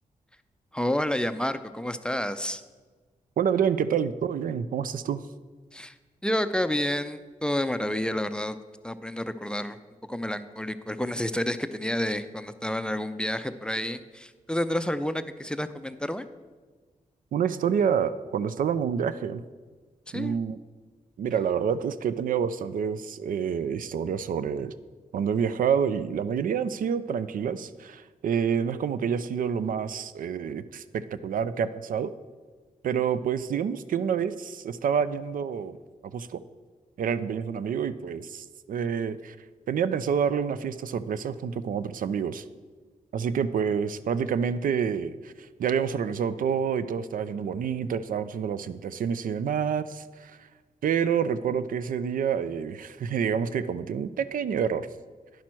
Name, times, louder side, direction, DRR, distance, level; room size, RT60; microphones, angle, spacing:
voice 1, 0.7-2.6 5.7-5.9 6.2-8.6 8.8-9.8 10.1-16.3 20.1-20.4, left 1 dB, 5° left, 11 dB, 0.4 m, -29 dB
voice 2, 3.4-5.2 17.3-19.4 20.1-20.6 21.2-24.7 25.1-32.1 32.8-35.8 36.1-36.4 37.0-39.4 39.7-42.4 43.1-45.3 45.6-50.3 50.8-54.9, right 7 dB, 75° right, 14 dB, 0.4 m, -28 dB
10.5 x 6.0 x 4.4 m, 1.4 s
cardioid pair, 65°, 14 cm